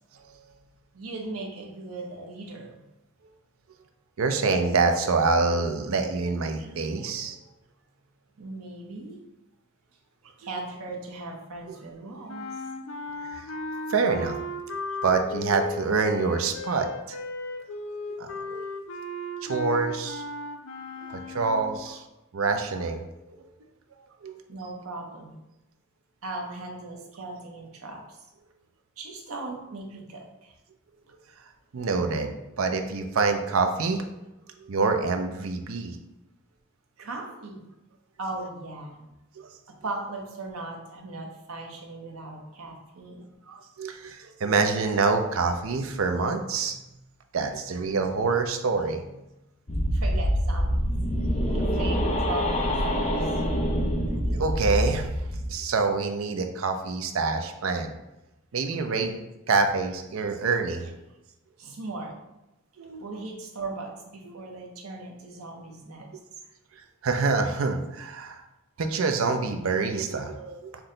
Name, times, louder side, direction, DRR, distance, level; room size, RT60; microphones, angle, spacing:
voice 1, 0.9-2.7 8.4-9.2 10.4-12.6 24.5-25.4 26.2-28.2 29.0-30.5 37.0-37.6 38.2-39.1 39.7-43.3 49.9-50.9 51.5-53.3 61.6-62.1 63.0-66.1, right 2 dB, 85° right, 1 dB, 0.9 m, -38 dB
voice 2, 4.2-7.4 13.4-13.5 13.9-14.4 15.0-17.2 18.2-18.7 19.4-20.2 21.0-22.0 22.3-23.5 24.2-24.4 31.7-34.0 34.6-36.0 43.5-46.8 47.3-49.0 54.3-55.1 55.5-57.9 58.5-59.2 59.5-60.9 62.8-63.0 67.0-68.4 68.8-70.7, right 4 dB, 70° right, 6 dB, 0.5 m, -26 dB
sound 1, 12.3-21.8, left 2 dB, 70° left, 0.5 m, -36 dB
sound 2, 49.7-55.5, equal, 35° left, 0.7 m, -25 dB
5.9 x 2.2 x 3.8 m, 0.94 s
head